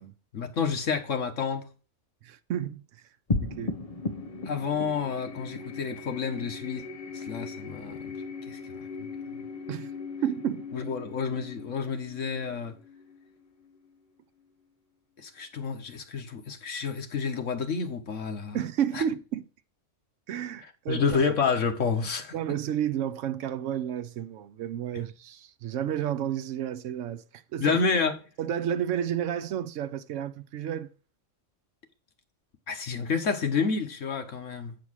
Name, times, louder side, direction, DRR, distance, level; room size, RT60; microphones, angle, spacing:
voice 1, 0.3-1.7 4.4-6.8 7.1-8.1 8.5-9.5 10.7-12.8 15.2-18.6 18.9-19.0 20.9-22.3 24.9-25.0 27.6-28.1 32.7-34.8, left 5 dB, 80° left, 1.6 m, -29 dB
voice 2, 2.2-2.8 3.4-3.8 9.7-9.9 10.2-10.7 18.5-19.4 20.3-21.2 22.3-27.8 28.4-30.9, right 10 dB, 80° right, 1.0 m, -31 dB
sound 1, 3.3-14.0, left 3 dB, 30° left, 0.9 m, -37 dB
8.5 x 4.8 x 6.2 m
omnidirectional pair, 1.3 m